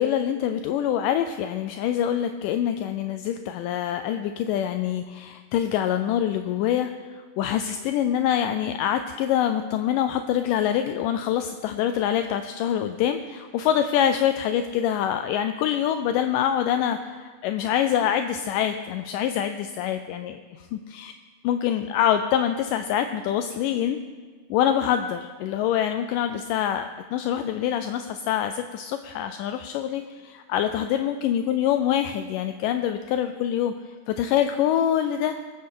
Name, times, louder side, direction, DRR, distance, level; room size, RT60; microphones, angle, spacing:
voice 1, 0.0-21.1 21.4-24.0 24.5-33.7 34.1-35.4, left 10 dB, 80° left, 8 dB, 2.0 m, -25 dB
20.0 x 9.7 x 3.8 m, 1.5 s
omnidirectional pair, 4.0 m